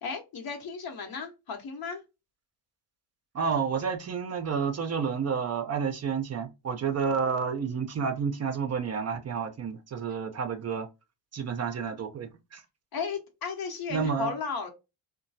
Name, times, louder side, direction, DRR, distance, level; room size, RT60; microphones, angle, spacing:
voice 1, 0.0-2.0 12.9-14.7, left 5 dB, 50° left, 1.1 m, -35 dB
voice 2, 3.3-10.9 11.3-12.6 13.9-14.3, right 6 dB, 35° right, 0.6 m, -30 dB
2.9 x 2.2 x 2.6 m
hypercardioid pair, 65°, 46 cm